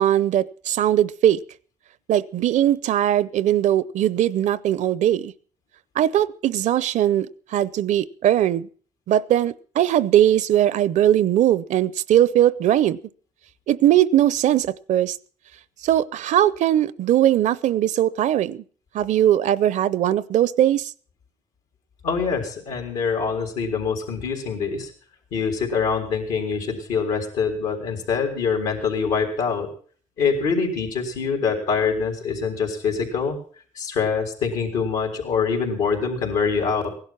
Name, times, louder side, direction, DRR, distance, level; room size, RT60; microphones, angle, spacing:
voice 1, 0.0-1.4 2.1-5.3 6.0-7.3 7.5-8.7 9.1-13.0 13.7-15.2 15.8-18.6 18.9-20.9, right 12 dB, 70° right, 21 dB, 0.6 m, -20 dB
voice 2, 22.0-24.9 25.3-29.7 30.2-33.4 33.8-36.9, left 5 dB, 90° left, 4 dB, 3.9 m, -24 dB
16.5 x 11.5 x 5.9 m, 0.44 s
cardioid pair, 75°, 13 cm